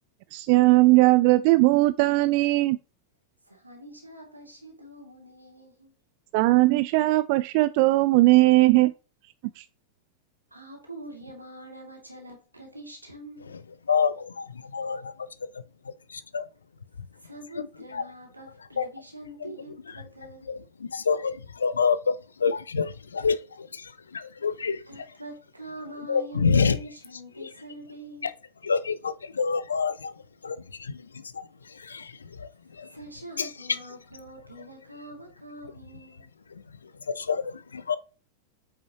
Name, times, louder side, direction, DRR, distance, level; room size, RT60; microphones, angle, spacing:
voice 1, 0.3-2.8 6.3-8.9 9.6-9.7, right 20 dB, 45° right, 0.3 m, -19 dB
voice 2, 3.4-5.9 10.5-13.5 17.1-20.6 24.9-28.3 32.8-36.3, right 1 dB, 85° right, 2.5 m, -44 dB
voice 3, 13.9-15.1 15.8-16.5 17.6-17.7 17.9-18.0 18.8-18.9 19.4-19.5 20.5-24.8 26.1-26.8 27.4-27.5 28.2-28.3 28.6-30.1 30.4-32.9 33.4-33.5 37.1-38.0, left 5 dB, 75° left, 0.6 m, -28 dB
8.3 x 5.6 x 3.0 m
figure-of-eight pair, 90°, 0 cm